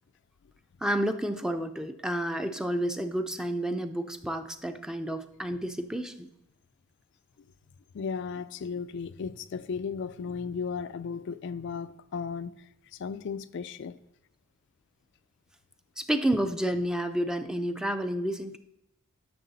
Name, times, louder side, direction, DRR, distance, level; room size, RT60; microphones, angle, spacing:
voice 1, 0.8-6.3 16.0-18.6, right 1 dB, 5° right, 0.5 m, -30 dB
voice 2, 7.9-14.0, left 5 dB, 60° left, 0.4 m, -35 dB
11.5 x 6.4 x 4.0 m
head